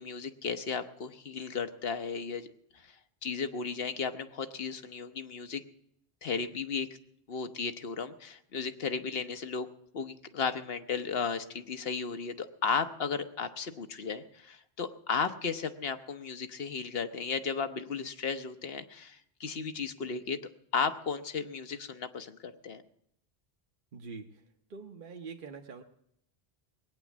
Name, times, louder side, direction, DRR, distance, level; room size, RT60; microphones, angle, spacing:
voice 1, 0.0-2.5 2.7-5.6 6.2-6.9 7.3-9.7 9.9-20.4 20.7-22.8, left 5 dB, 70° left, 9 dB, 1.2 m, -35 dB
voice 2, 23.9-24.4 24.7-25.8, right 4 dB, 55° right, 3 dB, 1.0 m, -44 dB
20.0 x 9.1 x 7.2 m, 0.73 s
omnidirectional pair, 1.0 m